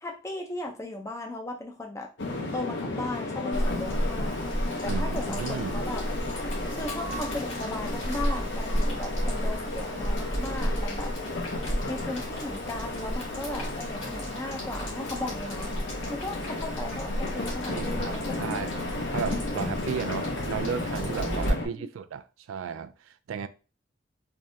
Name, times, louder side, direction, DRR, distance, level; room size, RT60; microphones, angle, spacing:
voice 1, 0.0-2.1 2.5-4.4 4.8-6.0 6.7-11.1 11.9-15.7 16.1-18.7 21.7-21.9, left 2 dB, 15° left, 0.5 m, -37 dB
sound 1, 2.2-21.7, left 2 dB, 65° left, 0.7 m, -34 dB
Boiling, 3.5-21.5, equal, 80° left, 1.7 m, -33 dB
voice 2, 4.9-5.8 17.7-23.5, right 7 dB, 90° right, 0.3 m, -35 dB
3.6 x 3.1 x 2.7 m
head